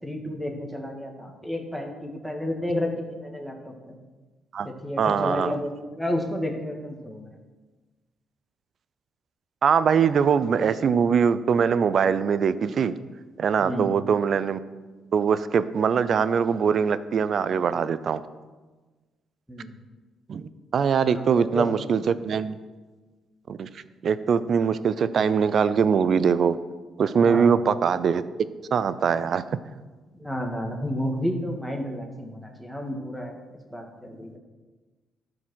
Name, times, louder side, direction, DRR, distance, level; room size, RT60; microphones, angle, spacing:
voice 1, 0.0-3.9 4.6-7.3 13.6-13.9 19.5-19.7 21.1-21.7 27.2-27.5 30.1-33.4 33.7-34.4, equal, 5° right, 2 dB, 1.7 m, -31 dB
voice 2, 5.0-5.5 9.6-12.9 13.4-14.6 15.1-18.2 20.3-22.6 23.5-23.7 24.0-26.6 27.0-28.2 28.7-29.4, right 6 dB, 55° right, 14 dB, 0.5 m, -22 dB
12.0 x 5.0 x 6.3 m, 1.3 s
cardioid pair, 90°, 0 cm